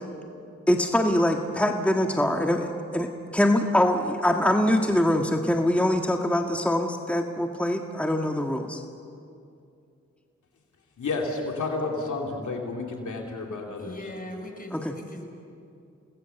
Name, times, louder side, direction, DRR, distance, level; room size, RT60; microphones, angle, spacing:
voice 1, 0.7-8.8 14.7-14.9, left 1 dB, 5° left, 3 dB, 1.7 m, -24 dB
voice 2, 11.0-14.0, left 3 dB, 90° left, 0 dB, 2.8 m, -31 dB
voice 3, 13.8-15.3, left 1 dB, 30° left, 4 dB, 5.0 m, -40 dB
29.0 x 19.5 x 6.9 m, 2.5 s
cardioid pair, 40°, 29 cm